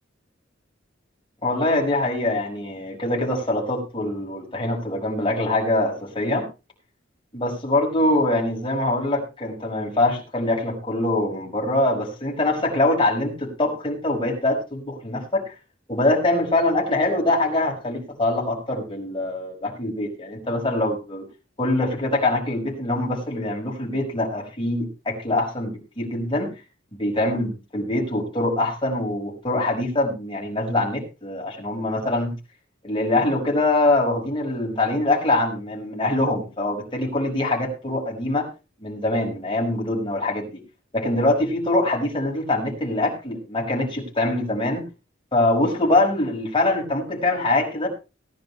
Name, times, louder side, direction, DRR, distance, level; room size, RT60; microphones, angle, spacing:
voice 1, 1.4-6.5 7.3-15.5 15.9-21.3 21.6-26.5 27.0-32.4 32.8-38.5 38.8-40.6 40.9-44.8 45.3-47.9, left 2 dB, 25° left, -1 dB, 5.4 m, -23 dB
19.0 x 11.0 x 3.2 m, 0.29 s
head